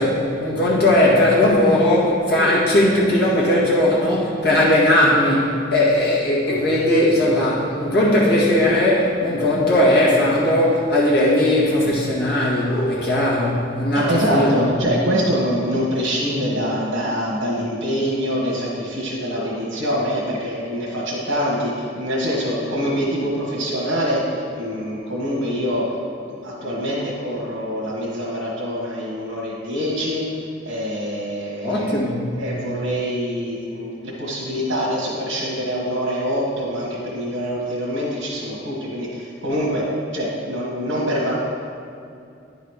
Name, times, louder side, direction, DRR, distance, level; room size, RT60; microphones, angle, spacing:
voice 1, 0.0-14.7 19.3-19.5 31.6-32.4, left 1 dB, 55° left, -6 dB, 1.7 m, -18 dB
voice 2, 13.9-32.0 32.3-39.9 40.1-41.3, equal, 75° right, -5 dB, 1.4 m, -25 dB
9.7 x 4.1 x 4.8 m, 2.5 s
head